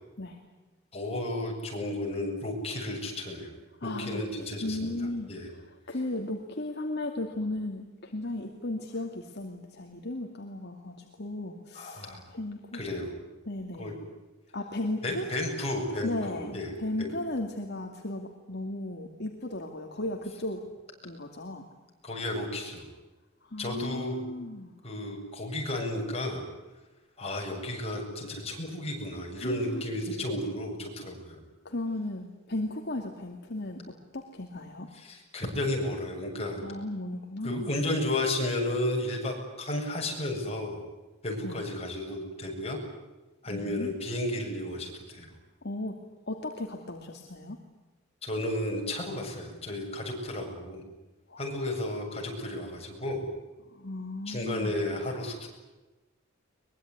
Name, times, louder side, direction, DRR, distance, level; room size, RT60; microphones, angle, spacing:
voice 1, 0.9-3.5 3.8-5.5 11.7-12.2 12.7-13.1 13.8-14.0 15.0-16.7 17.0-17.1 22.0-22.9 23.6-24.2 24.8-26.4 27.2-31.4 34.9-36.6 37.4-40.8 41.2-42.8 43.4-45.3 48.2-50.8 51.4-53.3 54.3-55.5, left 1 dB, 30° left, 1 dB, 7.7 m, -33 dB
voice 2, 3.8-4.2 4.6-12.8 13.5-14.0 14.5-15.3 16.0-20.6 21.0-21.7 23.4-24.7 29.4-29.8 31.6-34.9 36.6-37.7 41.4-41.6 43.5-43.9 45.6-46.0 46.3-47.6 51.3-51.6 53.7-54.7, left 2 dB, 55° left, 2 dB, 2.6 m, -36 dB
23.0 x 22.5 x 9.8 m, 1.1 s
head